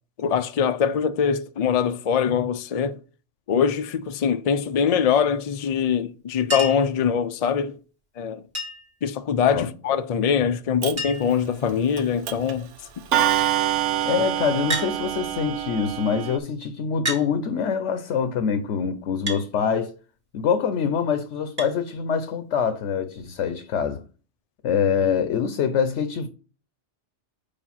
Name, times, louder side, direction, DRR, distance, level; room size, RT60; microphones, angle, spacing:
voice 1, 0.2-3.0 3.5-7.8 8.2-8.4 9.0-12.7, left 7 dB, 60° left, 0.4 m, -23 dB
Chink clink, 6.5-6.9 8.5-9.0 10.3-10.4 10.6-10.7 11.0-11.4 12.2-12.6 14.7-14.9 16.0-16.1 17.1-17.3 19.3-19.5 21.6-21.8 23.2-23.3, equal, 45° right, 2.0 m, -30 dB
Clock, 10.8-10.9 12.0-12.1 12.3-12.5 13.1-16.4, right 12 dB, 80° right, 1.1 m, -25 dB
voice 2, 14.0-19.9 20.3-24.0 24.6-26.3, left 7 dB, 75° left, 1.0 m, -25 dB
5.0 x 4.9 x 5.6 m
omnidirectional pair, 1.2 m